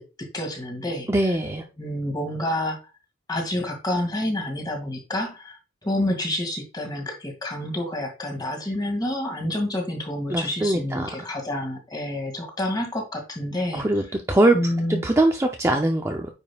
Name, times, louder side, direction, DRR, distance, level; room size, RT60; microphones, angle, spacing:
voice 1, 0.0-1.3 1.8-2.8 3.3-13.8 14.5-15.0, left 1 dB, 20° left, 2 dB, 2.2 m, -28 dB
voice 2, 1.1-1.6 10.3-11.2 13.7-14.0 14.3-14.6 14.9-16.3, right 1 dB, 15° right, 3 dB, 0.6 m, -21 dB
9.4 x 5.4 x 2.4 m, 0.30 s
head